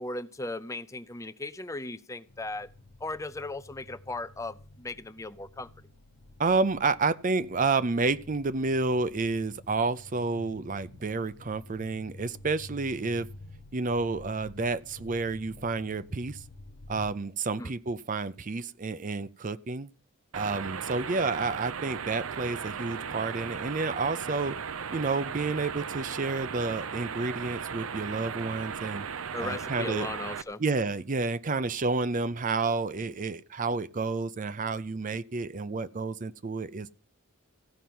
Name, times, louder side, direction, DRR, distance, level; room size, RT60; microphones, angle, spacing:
voice 1, 0.0-2.7 3.0-5.7 17.6-17.7 29.3-30.6, left 2 dB, 15° left, 0.5 m, -37 dB
sound 1, 2.3-17.1, left 2 dB, 90° left, 1.3 m, -50 dB
voice 2, 6.4-13.3 13.7-16.4 16.9-19.9 20.3-24.6 24.9-29.1 29.4-30.1 30.6-37.0, right 3 dB, 40° right, 0.5 m, -30 dB
sound 2, 20.3-30.4, right 6 dB, 85° right, 0.7 m, -37 dB
15.0 x 5.7 x 9.3 m
head